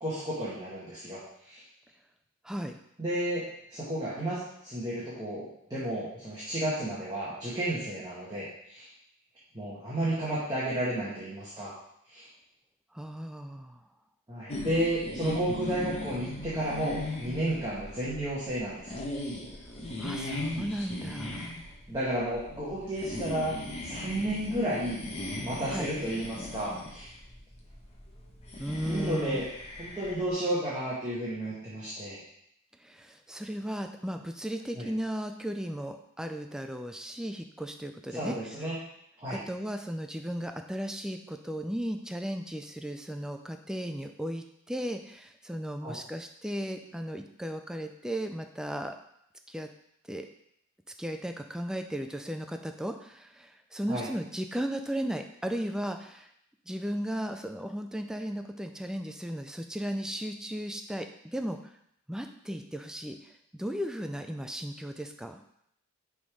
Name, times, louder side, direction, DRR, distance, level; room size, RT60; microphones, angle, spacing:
voice 1, 0.0-1.2 1.5-1.6 3.0-8.9 9.5-11.7 12.1-12.3 14.3-19.0 21.9-25.0 25.3-27.1 28.9-29.5 29.8-32.2 34.7-34.9 38.1-38.8 39.2-39.4 45.8-46.0 53.9-54.1, right 1 dB, 20° right, -9 dB, 1.4 m, -32 dB
voice 2, 2.4-2.8 12.9-13.8 20.0-21.5 25.7-25.9 28.6-29.4 32.8-38.4 39.3-49.0 49.5-49.7 50.1-50.3 51.0-56.3 56.7-61.1 61.3-61.6 62.1-63.2 63.5-65.4, equal, 5° right, 5 dB, 0.3 m, -35 dB
sound 1, 14.5-30.3, left 1 dB, 30° left, 1.0 m, -38 dB
6.1 x 3.7 x 4.9 m, 0.74 s
head